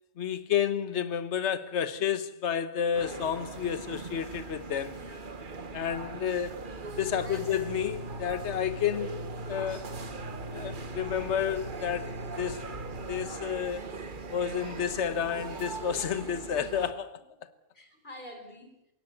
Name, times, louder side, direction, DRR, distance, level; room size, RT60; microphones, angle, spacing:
voice 1, 0.2-5.0 5.7-6.6 7.0-9.2 9.5-9.9 10.5-12.6 13.1-13.9 14.3-17.2, left 8 dB, 60° left, 1.4 m, -31 dB
sound 1, 2.9-16.9, right 4 dB, 40° right, 1.3 m, -41 dB
sound 2, 4.7-4.8 5.0-15.7, equal, 60° right, 4.0 m, -43 dB
voice 2, 4.8-5.4 7.1-7.5 17.4-17.5 17.7-18.8, left 1 dB, 40° left, 4.6 m, -48 dB
22.0 x 18.0 x 8.3 m
omnidirectional pair, 1.3 m